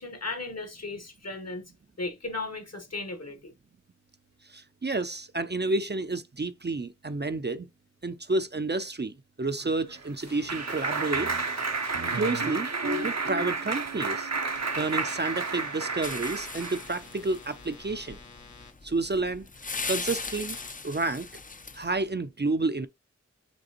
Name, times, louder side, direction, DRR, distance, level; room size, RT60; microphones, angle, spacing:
voice 1, 0.0-1.7 2.0-3.5, left 3 dB, 60° left, 1.2 m, -36 dB
voice 2, 4.5-7.7 8.0-11.3 12.1-12.7 13.0-14.3 14.7-18.2 18.8-19.4 19.9-20.6 20.8-21.3 21.7-22.9, right 3 dB, 35° right, 0.5 m, -30 dB
Clapping, 9.6-16.9, right 4 dB, 65° right, 0.7 m, -31 dB
sound 1, 10.3-12.3 14.5-18.7 20.5-20.7, left 4 dB, 85° left, 1.3 m, -50 dB
sound 2, 16.0-22.1, left 4 dB, 30° left, 0.4 m, -39 dB
5.2 x 3.3 x 2.8 m
wide cardioid pair, 45°, 29 cm